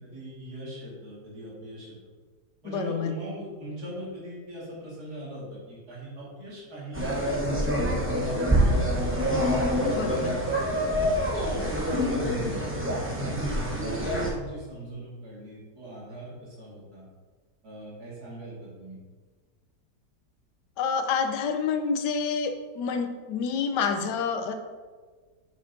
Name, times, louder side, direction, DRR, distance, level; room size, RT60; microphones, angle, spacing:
voice 1, 0.0-1.9 2.6-7.4 7.7-9.0 9.7-10.5 10.8-13.5 13.9-17.0 17.6-19.0, right 1 dB, 65° right, -6 dB, 2.6 m, -41 dB
voice 2, 2.6-3.1 8.8-8.9 9.9-10.4 20.8-24.5, left 6 dB, 85° left, 6 dB, 1.3 m, -28 dB
sound 1, 6.9-14.3, equal, 10° right, 0.7 m, -26 dB
7.9 x 6.3 x 2.7 m, 1.5 s
omnidirectional pair, 1.8 m